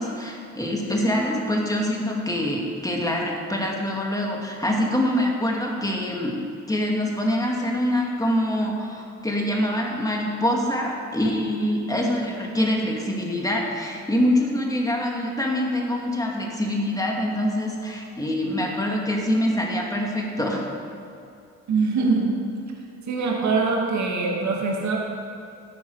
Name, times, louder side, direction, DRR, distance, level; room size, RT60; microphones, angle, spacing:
voice 1, 0.0-6.4 6.7-20.7, left 1 dB, 10° left, -1 dB, 2.3 m, -25 dB
voice 2, 21.7-22.4 23.1-25.0, right 4 dB, 65° right, -1 dB, 2.3 m, -23 dB
13.0 x 10.5 x 4.9 m, 2.6 s
cardioid pair, 90°, 30 cm